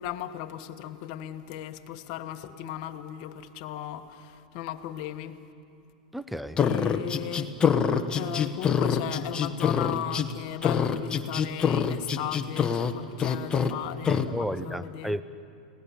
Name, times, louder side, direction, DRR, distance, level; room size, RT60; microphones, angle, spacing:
voice 1, 0.0-5.4 6.6-7.8 8.1-15.2, left 11 dB, 50° left, 1.3 m, -37 dB
voice 2, 6.1-6.6 14.1-15.2, equal, ahead, 0.6 m, -32 dB
sound 1, 6.6-10.3 10.6-12.9 13.2-13.7 14.1-14.3, left 7 dB, 20° left, 1.2 m, -25 dB
30.0 x 18.5 x 7.1 m
hypercardioid pair, 115°, 4 cm